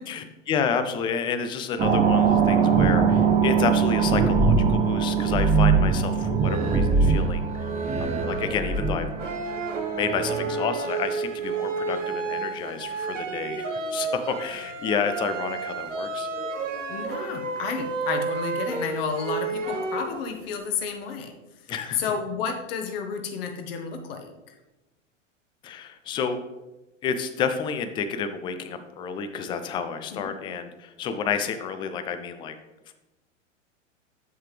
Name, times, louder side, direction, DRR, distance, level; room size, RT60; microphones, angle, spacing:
voice 1, 0.1-7.7 8.3-9.1 9.9-16.3 21.7-22.0 25.6-26.4 27.0-32.6 32.9-33.0, left 6 dB, 15° left, 10 dB, 0.4 m, -30 dB
sound 1, 1.8-10.6, right 5 dB, 20° right, 0.7 m, -22 dB
sound 2, 9.2-20.6, right 4 dB, 75° right, 1.1 m, -31 dB
voice 2, 16.9-21.3 21.9-24.3 30.1-30.3, left 5 dB, 50° left, 5 dB, 1.3 m, -31 dB
7.6 x 7.3 x 3.3 m, 1.0 s
figure-of-eight pair, 95°, 38 cm